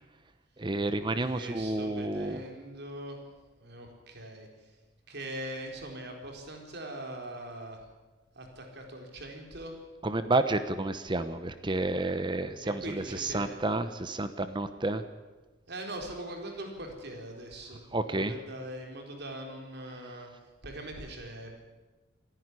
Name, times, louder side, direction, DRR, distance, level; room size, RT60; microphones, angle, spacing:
voice 1, 0.6-2.4 10.0-15.0 17.9-18.3, right 2 dB, 25° right, 10 dB, 0.9 m, -30 dB
voice 2, 1.2-3.3 3.6-4.8 5.1-7.9 8.3-9.8 12.6-13.6 15.7-21.5, right 1 dB, 60° right, 2 dB, 4.2 m, -42 dB
27.5 x 11.0 x 9.8 m, 1.2 s
head